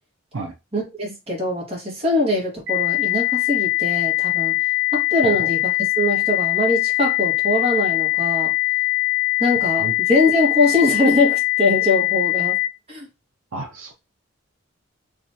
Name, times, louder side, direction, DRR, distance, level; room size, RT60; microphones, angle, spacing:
voice 1, 0.7-4.5 4.9-5.6 6.0-8.5 9.4-12.6 12.9-13.1, left 2 dB, 30° right, 1.6 m, -22 dB
sound 1, 2.7-12.7, left 24 dB, 60° right, 1.0 m, -21 dB
voice 2, 9.6-9.9 13.5-13.9, right 2 dB, 80° right, 0.6 m, -31 dB
3.5 x 3.0 x 2.8 m
head